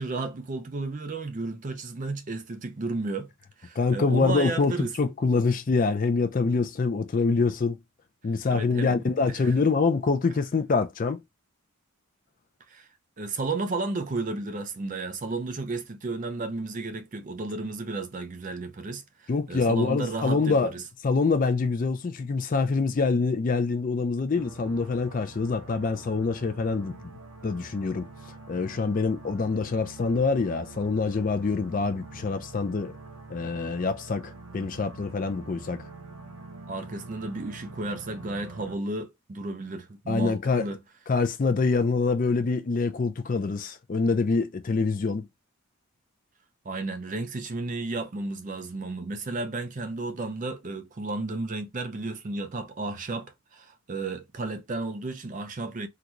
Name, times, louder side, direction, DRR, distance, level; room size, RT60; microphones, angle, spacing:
voice 1, 0.0-3.3 3.6-4.9 8.5-8.9 9.3-9.4 12.7-12.9 13.2-20.8 36.7-40.8 46.6-55.9, right 3 dB, 35° right, 0.5 m, -33 dB
voice 2, 3.8-7.8 8.2-11.2 19.3-20.7 21.0-27.1 27.4-28.1 28.5-33.0 33.3-35.9 40.1-40.7 41.1-45.3, left 4 dB, 40° left, 0.4 m, -25 dB
sound 1, 24.3-38.8, right 3 dB, 80° right, 0.8 m, -45 dB
3.8 x 2.2 x 2.9 m
head